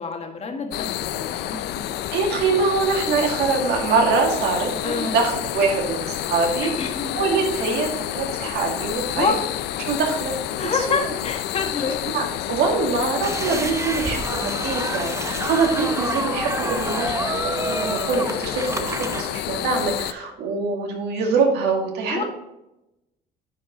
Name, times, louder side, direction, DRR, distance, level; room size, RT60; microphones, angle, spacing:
voice 1, 0.0-1.8 4.8-5.2 6.6-7.1 9.2-9.4 10.6-12.0 22.1-22.2, left 4 dB, 40° left, 3 dB, 1.6 m, -27 dB
sound 1, 0.7-20.1, left 12 dB, 80° left, 0.5 m, -29 dB
voice 2, 2.1-6.7 7.1-9.3 9.8-11.0 12.1-12.2 12.5-22.2, right 4 dB, 80° right, 1 dB, 2.2 m, -24 dB
sound 2, 13.2-19.2, right 2 dB, 15° right, 0.8 m, -29 dB
10.0 x 5.3 x 3.9 m, 0.91 s
cardioid pair, 110°, 17 cm